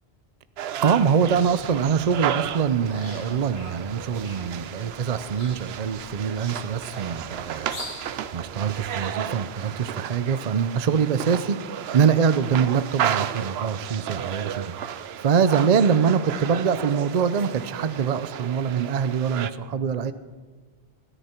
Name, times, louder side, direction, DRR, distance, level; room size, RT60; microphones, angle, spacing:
sound 1, 0.6-19.5, right 9 dB, 80° right, 0.9 m, -33 dB
sound 2, 0.8-9.2, left 2 dB, 75° left, 1.8 m, -45 dB
voice 1, 0.8-7.8 8.3-20.1, right 6 dB, 45° right, 12 dB, 0.6 m, -24 dB
27.5 x 10.0 x 4.4 m, 1.4 s
omnidirectional pair, 1.1 m